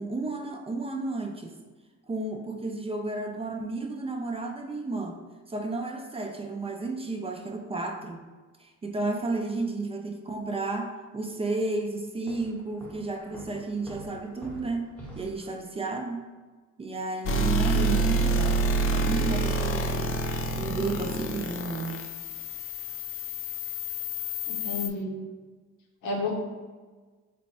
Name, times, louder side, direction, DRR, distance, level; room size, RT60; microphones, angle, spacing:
voice 1, 0.0-1.6 2.1-5.2 5.5-8.2 8.6-14.9 15.2-16.2 16.8-18.6 18.9-20.2 20.5-22.0, right 3 dB, 20° right, 3 dB, 0.4 m, -32 dB
Walk footsteps, 12.3-15.6, equal, 5° left, 0.9 m, -46 dB
sound 1, 17.3-24.9, right 1 dB, 45° left, 0.5 m, -28 dB
voice 2, 17.6-18.0 24.5-25.2 26.0-26.3, left 3 dB, 90° left, 0 dB, 0.8 m, -32 dB
3.4 x 2.1 x 4.1 m, 1.4 s
cardioid pair, 90°, 30 cm